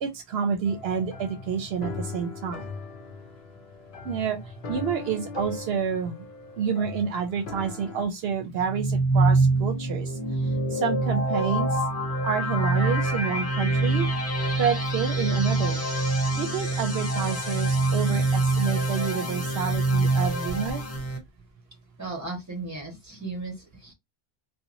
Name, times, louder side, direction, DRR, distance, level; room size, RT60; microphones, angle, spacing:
voice 1, 0.0-2.7 4.0-6.3 6.6-10.4 10.7-11.9 12.2-14.1 14.5-15.8 16.4-20.8, right 7 dB, 75° right, 0.8 m, -29 dB
sound 1, 0.6-8.0, left 3 dB, 60° left, 0.7 m, -39 dB
sound 2, 8.6-21.2, right 2 dB, 35° left, 1.1 m, -25 dB
voice 2, 22.0-23.9, right 3 dB, 15° right, 1.2 m, -36 dB
2.8 x 2.2 x 2.5 m
omnidirectional pair, 1.1 m